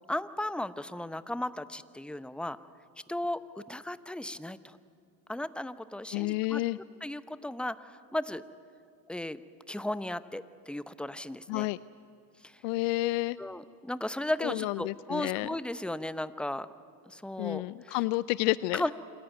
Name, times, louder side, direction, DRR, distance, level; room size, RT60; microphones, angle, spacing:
voice 1, 0.1-2.6 3.1-4.8 5.3-6.6 7.0-8.4 9.1-9.4 9.7-11.7 12.4-12.6 13.4-16.7 17.1-18.0 18.7-18.9, left 1 dB, ahead, 15 dB, 0.8 m, -35 dB
voice 2, 6.1-6.8 11.5-11.8 12.6-13.4 14.4-15.5 17.4-18.9, left 20 dB, 70° left, 19 dB, 0.6 m, -30 dB
27.0 x 15.0 x 9.2 m, 2.5 s
hypercardioid pair, 70°, 49 cm